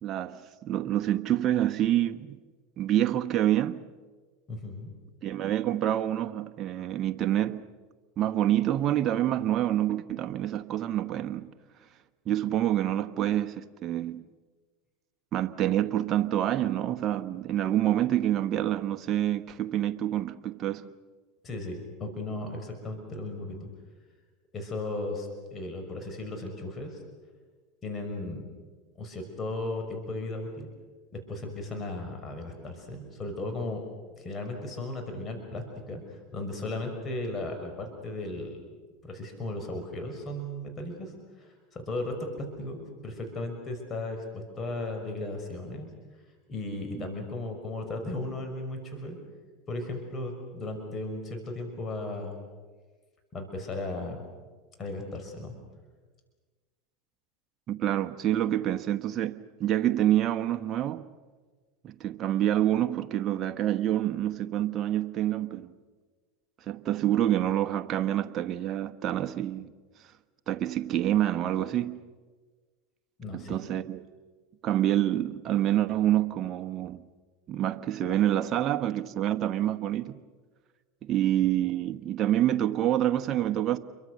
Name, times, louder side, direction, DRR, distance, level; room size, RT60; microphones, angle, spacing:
voice 1, 0.0-2.4 2.8-3.9 5.2-7.7 8.2-11.5 12.3-14.2 15.3-20.9 47.0-47.1 57.7-61.1 61.8-65.7 66.7-69.7 70.5-72.0 73.3-74.0 74.6-77.0 77.5-80.2 81.1-83.8, right 12 dB, 40° right, 1.2 m, -27 dB
voice 2, 4.5-4.9 21.4-23.7 24.5-27.0 27.8-28.5 29.0-30.7 31.1-33.8 34.2-38.6 39.0-41.1 41.4-45.9 46.5-49.2 49.7-52.4 53.3-54.2 54.8-55.5 73.2-73.6, left 2 dB, 30° left, 5.8 m, -36 dB
29.0 x 23.5 x 6.6 m
hypercardioid pair, 100°, 0 cm